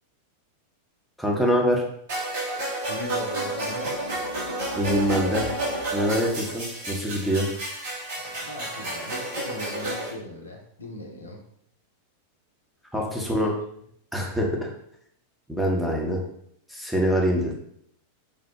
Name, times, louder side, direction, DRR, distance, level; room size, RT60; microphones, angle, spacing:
voice 1, 1.2-1.8 4.8-5.5 5.9-7.5 12.9-13.5 14.1-14.7 15.5-16.2 16.7-17.5, equal, ahead, -3 dB, 0.7 m, -24 dB
sound 1, 2.1-10.1, right 1 dB, 55° right, 1.0 m, -31 dB
voice 2, 2.9-4.0 8.2-11.4 12.9-13.5, left 1 dB, 80° left, 0 dB, 0.6 m, -39 dB
3.4 x 2.0 x 3.0 m, 0.69 s
figure-of-eight pair, 90°, 0 cm